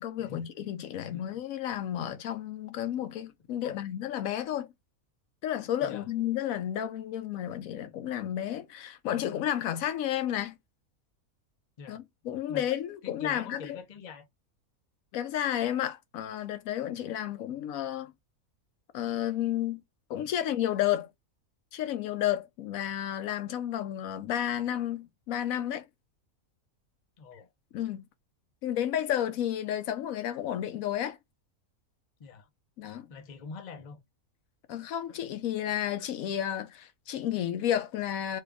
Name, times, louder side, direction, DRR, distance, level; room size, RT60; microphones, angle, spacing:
voice 1, 0.0-4.7 5.4-10.6 11.9-13.8 15.1-18.1 18.9-19.8 20.1-21.1 21.7-25.9 27.7-28.0 28.6-31.2 32.8-33.1 34.7-38.4, left 11 dB, 75° left, 1.0 m, -32 dB
voice 2, 13.0-14.3 27.2-27.5 32.2-32.5 33.1-34.0, left 5 dB, 40° left, 0.6 m, -44 dB
3.2 x 2.4 x 3.4 m
omnidirectional pair, 1.5 m